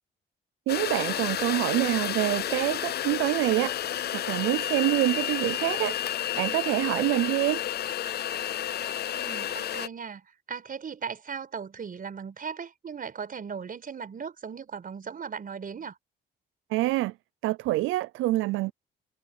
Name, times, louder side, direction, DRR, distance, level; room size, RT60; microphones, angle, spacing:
sound 1, 0.7-9.9, left 11 dB, 55° left, 0.6 m, -31 dB
voice 1, 0.7-3.7 4.1-6.0 6.3-7.6 16.7-17.1 17.4-18.7, right 18 dB, 90° right, 0.5 m, -26 dB
voice 2, 9.1-15.9, right 6 dB, 45° right, 4.9 m, -38 dB
cardioid pair, 90°, 20 cm